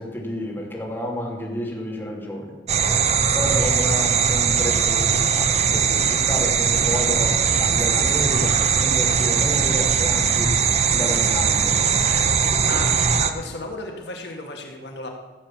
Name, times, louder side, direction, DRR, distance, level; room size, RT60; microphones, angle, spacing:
voice 1, 0.0-2.6 3.3-10.7 10.9-11.8, left 1 dB, 10° left, -3 dB, 2.8 m, -30 dB
sound 1, 2.7-13.3, right 6 dB, 40° right, 0.7 m, -20 dB
voice 2, 12.5-15.1, left 2 dB, 75° left, 2 dB, 1.6 m, -34 dB
15.0 x 7.2 x 7.3 m, 1.3 s
head